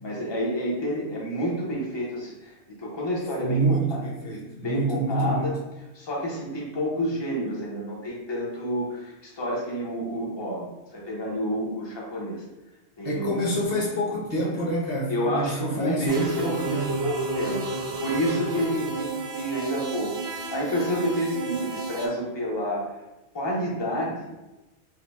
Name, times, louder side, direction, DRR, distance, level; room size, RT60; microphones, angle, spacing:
voice 1, 0.0-3.8 4.5-5.6 5.9-12.4 13.0-13.6 15.1-16.5 17.0-23.0 23.3-24.3, equal, 25° left, -4 dB, 0.8 m, -29 dB
voice 2, 3.4-5.5 13.0-17.0, right 1 dB, 60° left, -3 dB, 1.0 m, -27 dB
sound 1, 16.1-22.1, right 3 dB, 80° right, 0.9 m, -31 dB
4.7 x 2.2 x 3.4 m, 1.0 s
omnidirectional pair, 1.1 m